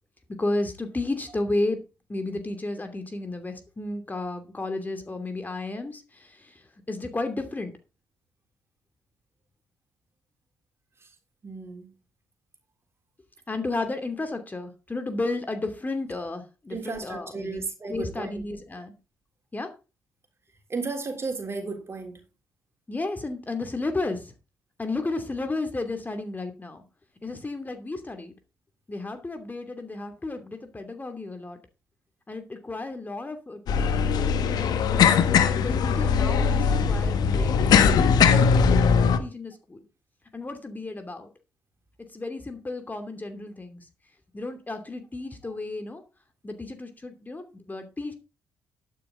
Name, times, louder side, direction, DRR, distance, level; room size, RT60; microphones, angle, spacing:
voice 1, 0.4-1.8 2.1-7.7 13.5-17.6 17.9-18.9 19.5-19.7 22.9-24.3 24.8-26.8 27.2-28.3 28.9-31.6 32.3-34.8 35.5-37.6 38.5-39.8 40.3-41.3 42.1-43.8 44.3-46.0 46.4-48.1, left 2 dB, 25° left, 2.8 m, -33 dB
voice 2, 11.4-11.9 16.7-18.3 20.7-22.2, right 4 dB, 35° right, 3.5 m, -34 dB
sound 1, 33.7-39.2, left 6 dB, 65° left, 1.4 m, -20 dB
12.0 x 9.3 x 3.9 m
hypercardioid pair, 45°, 8 cm